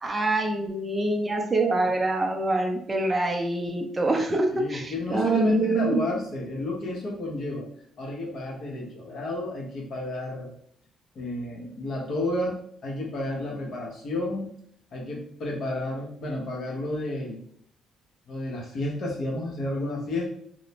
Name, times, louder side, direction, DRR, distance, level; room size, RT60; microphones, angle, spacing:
voice 1, 0.0-6.0, right 2 dB, 20° right, 2 dB, 0.5 m, -25 dB
voice 2, 4.5-7.7 8.0-10.5 11.1-14.5 14.9-17.4 18.3-20.3, left 1 dB, 60° left, -2 dB, 0.9 m, -31 dB
2.5 x 2.1 x 2.9 m, 0.65 s
cardioid pair, 95°, 0 cm